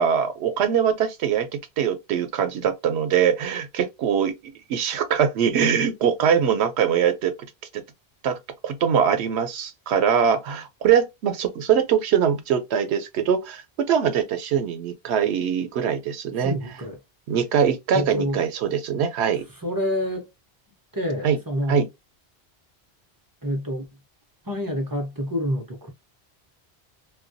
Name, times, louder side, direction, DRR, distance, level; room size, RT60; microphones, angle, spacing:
voice 1, 0.0-1.5 1.8-4.3 4.7-7.3 8.2-8.4 8.6-16.5 17.3-19.4 21.2-21.4 21.7-21.9, right 8 dB, 85° right, 0.8 m, -22 dB
voice 2, 16.4-17.0 17.9-18.4 19.6-20.3 20.9-21.8 23.4-23.9 24.4-25.9, equal, 30° right, 0.4 m, -27 dB
2.2 x 2.2 x 2.5 m
omnidirectional pair, 1.1 m